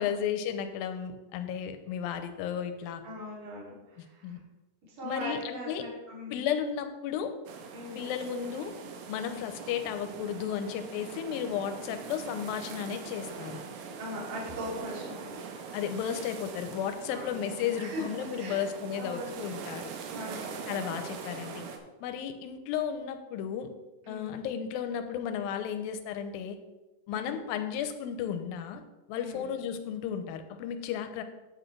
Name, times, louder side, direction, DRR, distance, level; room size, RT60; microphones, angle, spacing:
voice 1, 0.0-3.0 4.0-4.4 5.0-5.9 6.3-7.4 8.0-8.8 9.1-13.6 15.7-19.9 20.7-21.7 22.0-23.7 24.1-26.6 27.1-28.8 29.1-31.2, left 8 dB, 80° left, 8 dB, 2.4 m, -34 dB
voice 2, 3.0-4.4 4.9-6.5 7.7-8.1 14.0-15.4 17.1-17.4 17.8-18.7 18.9-19.4 20.1-20.5 24.0-24.4 27.1-27.4 29.1-29.6, equal, 50° right, -5 dB, 3.9 m, -40 dB
sound 1, 7.5-21.8, right 6 dB, 85° right, 2.9 m, -42 dB
10.0 x 8.1 x 3.3 m, 1.1 s
omnidirectional pair, 4.3 m